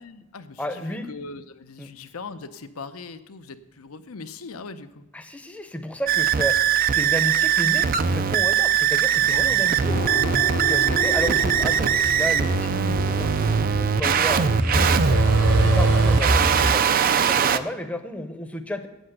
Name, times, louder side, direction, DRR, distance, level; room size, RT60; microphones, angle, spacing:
voice 1, 0.0-5.0 9.2-10.1, left 4 dB, 80° left, 10 dB, 0.7 m, -40 dB
voice 2, 0.6-1.1 1.8-1.9 5.1-6.5 6.9-9.9 10.7-14.9 15.3-16.8 17.3-18.9, equal, 5° left, 7 dB, 0.7 m, -32 dB
sound 1, 6.1-17.6, right 8 dB, 40° right, 0.4 m, -21 dB
Truck, 9.1-16.7, right 1 dB, 90° right, 3.0 m, -26 dB
sound 2, 9.9-15.7, left 3 dB, 40° left, 0.7 m, -35 dB
8.6 x 8.0 x 7.8 m, 1.0 s
head